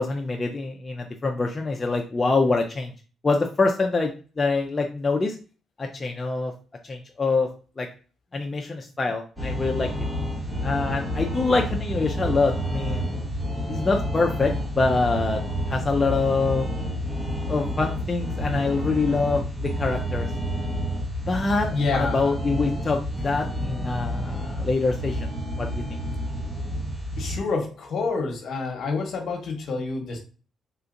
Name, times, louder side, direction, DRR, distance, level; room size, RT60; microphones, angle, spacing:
voice 1, 0.0-2.9 3.2-4.1 4.4-5.4 5.8-6.5 6.9-7.5 7.8-7.9 8.3-9.9 10.6-13.2 13.7-15.4 15.7-16.6 17.5-20.3 21.2-25.3 25.6-25.8, left 3 dB, 30° left, 2 dB, 0.4 m, -25 dB
sound 1, 9.4-27.4, equal, 20° right, 1.0 m, -29 dB
voice 2, 21.7-22.3 27.2-30.2, left 4 dB, 60° left, 3 dB, 0.9 m, -28 dB
3.4 x 2.8 x 2.4 m, 0.37 s
cardioid pair, 90°, 0 cm